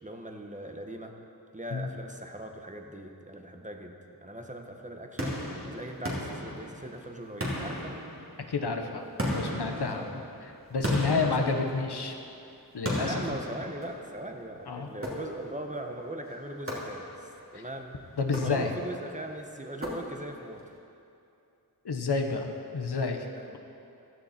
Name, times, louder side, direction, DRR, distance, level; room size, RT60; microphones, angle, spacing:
voice 1, 0.0-1.1 1.5-3.9 4.2-5.4 5.7-8.0 9.8-10.2 11.2-11.9 12.9-18.0 18.4-20.6 23.4-23.6, right 1 dB, 20° right, 3 dB, 1.3 m, -40 dB
sound 1, 5.2-7.0 7.4-8.6 9.2-12.2 12.8-14.3 15.0-15.7 16.7-17.4 18.2-19.0 19.8-20.5, equal, 35° right, 2.8 m, -35 dB
voice 2, 8.5-9.0 9.3-10.0 10.4-12.1 12.7-13.1 14.7-14.9 18.2-18.7 21.8-23.3, left 4 dB, 90° left, 4 dB, 1.2 m, -30 dB
15.5 x 13.0 x 4.4 m, 2.6 s
wide cardioid pair, 65°, 39 cm